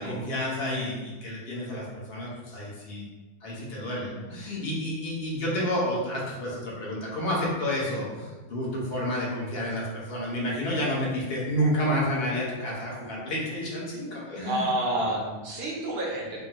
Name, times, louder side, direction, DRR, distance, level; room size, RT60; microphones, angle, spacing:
voice 1, 0.0-3.1 3.4-14.6, equal, 55° left, -4 dB, 0.9 m, -30 dB
voice 2, 14.4-16.4, right 1 dB, 60° right, -1 dB, 0.7 m, -30 dB
3.7 x 2.0 x 2.8 m, 1.3 s
omnidirectional pair, 1.3 m